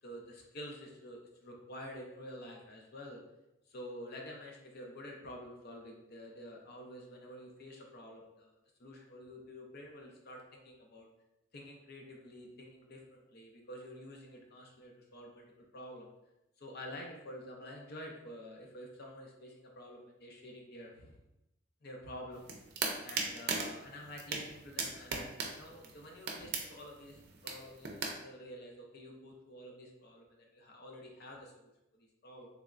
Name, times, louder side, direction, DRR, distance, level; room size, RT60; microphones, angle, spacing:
voice 1, 0.0-3.2 3.7-8.5 8.8-11.1 11.5-15.4 15.7-16.1 16.6-21.2 21.8-22.5 23.0-32.5, left 1 dB, 55° left, 0 dB, 0.6 m, -49 dB
sound 1, 22.3-28.1, right 4 dB, 60° right, 0.5 m, -39 dB
3.4 x 3.1 x 2.4 m, 0.91 s
head